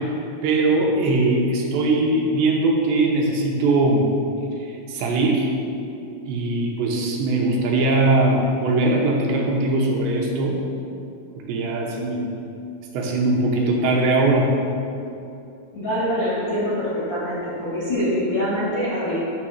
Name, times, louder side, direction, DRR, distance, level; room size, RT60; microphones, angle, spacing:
voice 1, 0.4-4.1 4.9-5.5 6.3-10.6 11.4-12.3 12.9-14.5, right 2 dB, 80° right, -1 dB, 2.8 m, -20 dB
voice 2, 15.7-19.2, equal, 80° left, -10 dB, 1.1 m, -24 dB
9.7 x 3.5 x 6.3 m, 2.6 s
omnidirectional pair, 5.4 m